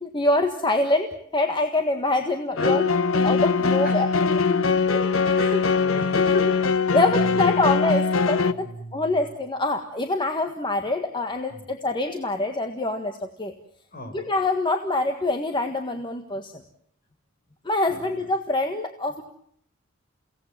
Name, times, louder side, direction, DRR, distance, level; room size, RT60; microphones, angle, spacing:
voice 1, 0.0-2.8 3.2-4.1 5.0-5.1 6.9-8.7 8.9-13.5 14.0-16.5 17.6-19.2, left 2 dB, 25° left, 5 dB, 1.6 m, -25 dB
sound 1, 2.6-8.5, left 4 dB, 80° left, 1.1 m, -21 dB
voice 2, 2.6-2.9 3.8-7.6 8.5-9.2 11.5-11.7 13.9-14.2 17.9-18.0, left 1 dB, 45° left, 5 dB, 5.9 m, -34 dB
30.0 x 18.0 x 7.4 m, 0.67 s
head